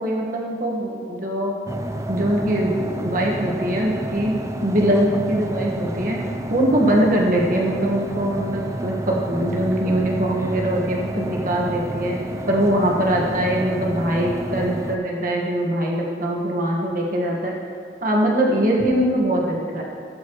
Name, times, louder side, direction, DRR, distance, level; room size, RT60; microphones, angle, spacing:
voice 1, 0.0-1.5 2.1-4.3 4.6-6.2 6.5-12.2 12.5-17.5 18.0-19.8, right 1 dB, 50° right, -2 dB, 1.6 m, -22 dB
sound 1, 1.7-15.0, right 1 dB, 15° right, 0.5 m, -30 dB
17.5 x 8.4 x 3.1 m, 2.3 s
head